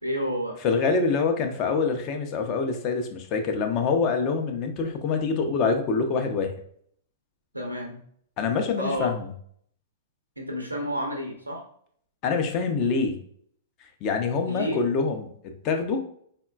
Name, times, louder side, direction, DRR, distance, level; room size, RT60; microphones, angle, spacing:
voice 1, 0.0-0.6 7.5-8.0 8.8-9.1 10.4-11.6 14.4-14.8, equal, 85° right, 2 dB, 0.7 m, -30 dB
voice 2, 0.6-6.5 8.4-9.3 12.2-13.2 14.0-15.3 15.6-16.0, left 4 dB, 35° left, 5 dB, 0.4 m, -25 dB
3.7 x 2.1 x 2.3 m, 0.62 s
figure-of-eight pair, 105°, 0 cm